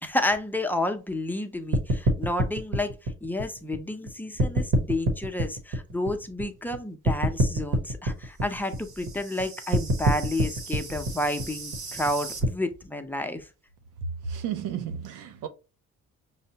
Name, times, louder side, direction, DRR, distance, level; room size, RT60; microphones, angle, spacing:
voice 1, 0.0-13.5, left 1 dB, 5° left, 0.5 m, -30 dB
sound 1, 1.7-4.1 4.4-6.8 7.0-12.5, right 1 dB, 65° right, 1.1 m, -27 dB
voice 2, 14.3-15.5, right 8 dB, 90° right, 0.7 m, -33 dB
5.5 x 2.1 x 2.8 m
cardioid pair, 90°, 30 cm